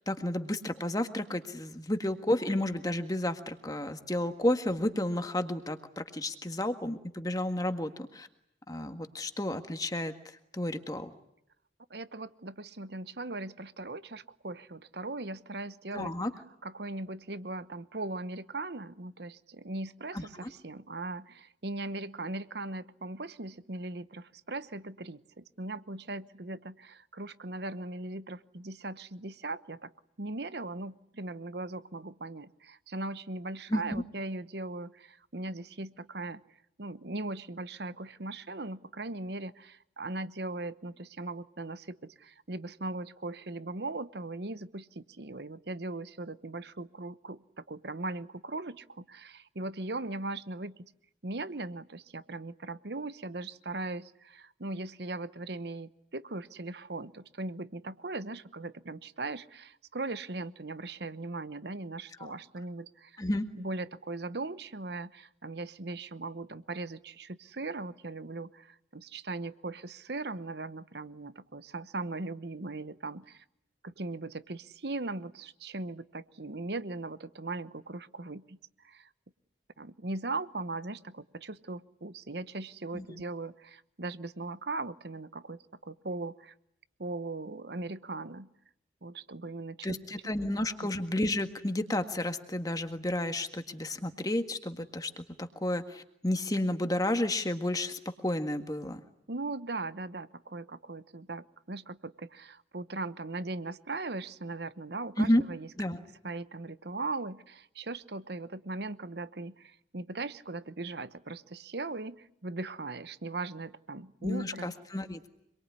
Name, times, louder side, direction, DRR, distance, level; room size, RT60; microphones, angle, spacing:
voice 1, 0.1-8.3 8.7-10.1 10.5-11.1 15.9-16.3 20.1-20.5 33.7-34.0 62.2-62.3 63.2-63.5 82.9-83.2 89.8-99.0 105.2-105.4 105.8-106.0 114.2-115.3, left 1 dB, 20° left, 8 dB, 1.7 m, -31 dB
voice 2, 11.9-16.1 16.6-29.9 30.2-36.4 36.8-50.9 51.2-63.2 63.5-73.4 73.8-79.1 79.8-86.5 87.0-88.5 89.0-90.0 90.8-90.9 99.3-105.7 106.2-114.7, right 2 dB, 55° right, 15 dB, 1.0 m, -39 dB
26.5 x 22.5 x 9.7 m, 0.79 s
head